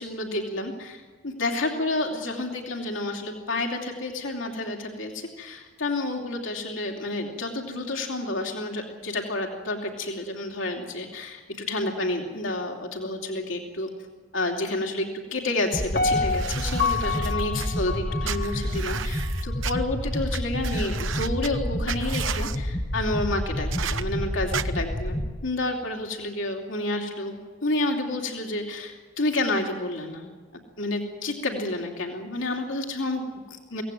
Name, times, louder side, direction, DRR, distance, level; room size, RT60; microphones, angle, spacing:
voice 1, 0.0-13.9 14.3-30.3 30.8-33.8, left 2 dB, 80° left, 2 dB, 2.9 m, -30 dB
sound 1, 15.7-25.3, equal, 20° left, 1.3 m, -29 dB
Piano, 15.9-19.0 19.5-19.6, left 4 dB, 50° left, 1.1 m, -28 dB
sound 2, 16.3-17.7 18.2-19.7 20.3-20.4 20.6-21.5 21.9-22.6 23.7-24.0 24.5-24.6, right 8 dB, 80° right, 1.0 m, -34 dB
24.0 x 17.5 x 9.2 m, 1.5 s
head